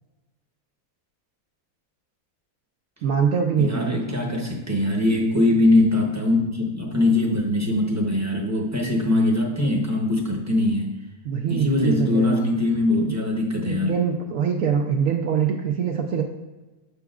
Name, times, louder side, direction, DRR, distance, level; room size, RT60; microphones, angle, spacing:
voice 1, 3.0-4.0 11.3-12.5 13.0-13.2 13.6-16.2, right 7 dB, 70° right, 2 dB, 0.9 m, -23 dB
voice 2, 3.6-10.9 11.5-14.0, left 2 dB, 15° right, 0 dB, 0.7 m, -22 dB
7.0 x 6.7 x 2.4 m, 1.2 s
omnidirectional pair, 1.6 m